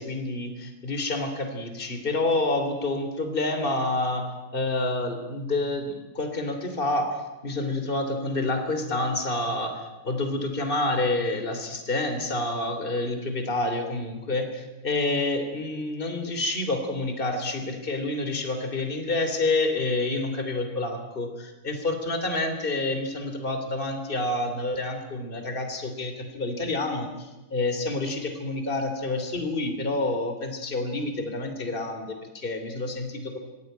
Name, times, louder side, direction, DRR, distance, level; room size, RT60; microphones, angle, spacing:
voice 1, 0.0-33.4, left 2 dB, 25° left, 6 dB, 3.2 m, -28 dB
26.0 x 21.5 x 9.2 m, 1.1 s
omnidirectional pair, 2.3 m